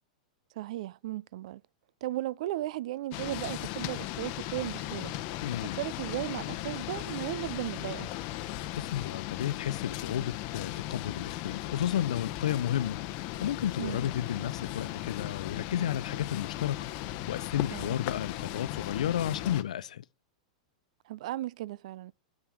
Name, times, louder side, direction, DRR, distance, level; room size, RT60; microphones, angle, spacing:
voice 1, 0.6-1.6 2.0-5.1 5.8-8.1 13.8-14.0 17.7-18.0 21.1-22.1, right 15 dB, 65° right, 0.3 m, -36 dB
sound 1, 3.1-19.6, left 15 dB, 50° left, 0.7 m, -37 dB
voice 2, 5.4-5.8 8.7-13.0 13.4-16.9 17.3-20.0, left 10 dB, 80° left, 0.5 m, -32 dB
8.4 x 5.9 x 6.2 m
hypercardioid pair, 120°, 4 cm